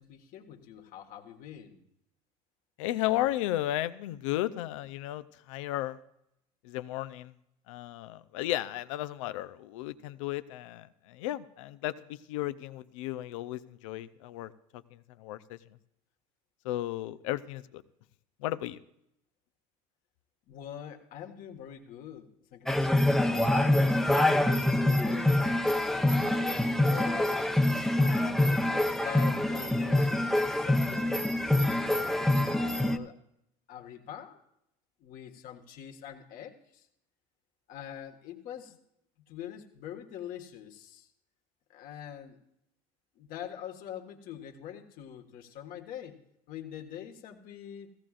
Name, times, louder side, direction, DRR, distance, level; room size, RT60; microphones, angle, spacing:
voice 1, 0.0-1.8 20.5-27.5 28.0-31.2 31.8-33.1 33.7-34.4 35.0-36.9 37.7-38.8 39.3-41.1 41.7-42.4 43.1-46.2 46.5-47.9, left 10 dB, 60° left, 4 dB, 1.6 m, -44 dB
voice 2, 2.8-6.0 6.6-7.3 7.7-15.6 16.6-17.8 18.4-18.8, left 15 dB, 90° left, 14 dB, 0.6 m, -34 dB
sound 1, 22.7-33.0, left 1 dB, 5° left, 0.7 m, -25 dB
16.5 x 15.0 x 2.5 m, 0.78 s
supercardioid pair, 105°, 16 cm